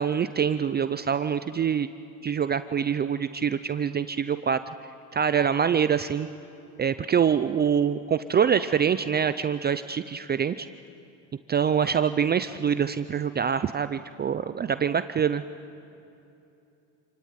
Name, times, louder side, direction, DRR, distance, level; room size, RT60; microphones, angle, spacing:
voice 1, 0.0-1.9 2.2-4.6 5.1-6.3 6.8-10.7 11.5-15.4, right 7 dB, 25° right, 12 dB, 0.6 m, -25 dB
27.5 x 17.5 x 9.4 m, 2.8 s
supercardioid pair, 100°, 42 cm